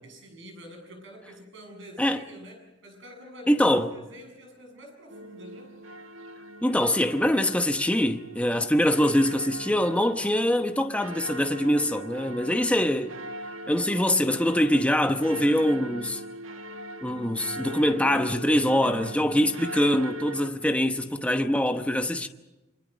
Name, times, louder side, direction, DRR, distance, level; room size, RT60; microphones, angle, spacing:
voice 1, 0.0-5.7, equal, 65° right, 7.2 m, -47 dB
voice 2, 3.5-3.9 6.6-13.1 13.7-16.2 17.0-22.3, left 1 dB, 5° left, 0.9 m, -24 dB
sound 1, 5.1-20.5, right 1 dB, 85° right, 1.3 m, -41 dB
27.5 x 25.5 x 5.2 m
head